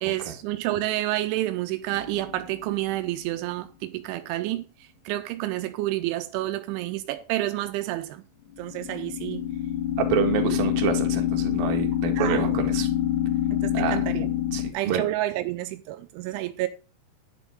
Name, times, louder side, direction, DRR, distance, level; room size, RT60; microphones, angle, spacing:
voice 1, 0.0-8.2 8.6-9.5 10.5-10.6 12.2-12.7 13.6-14.3 14.7-16.7, right 15 dB, 85° right, 3.1 m, -29 dB
sound 1, 1.9-2.5 8.6-14.7, left 11 dB, 70° left, 3.3 m, -26 dB
voice 2, 10.0-12.9 13.7-14.0 14.5-15.0, right 8 dB, 60° right, 3.1 m, -27 dB
11.0 x 10.0 x 3.6 m
omnidirectional pair, 5.4 m